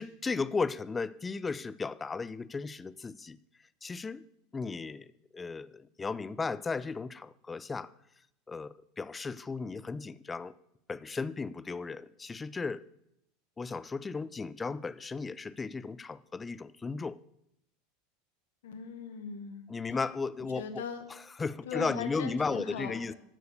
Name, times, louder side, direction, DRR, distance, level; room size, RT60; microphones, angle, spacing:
voice 1, 0.0-3.4 3.8-4.2 4.5-7.9 8.5-10.5 10.9-12.8 13.6-17.2 19.7-20.8 21.4-23.1, left 4 dB, 20° left, 17 dB, 0.4 m, -35 dB
voice 2, 18.6-19.6 20.5-21.0 21.6-23.1, left 6 dB, 80° left, 8 dB, 1.4 m, -39 dB
13.0 x 4.6 x 6.7 m, 0.78 s
hypercardioid pair, 95°, 0 cm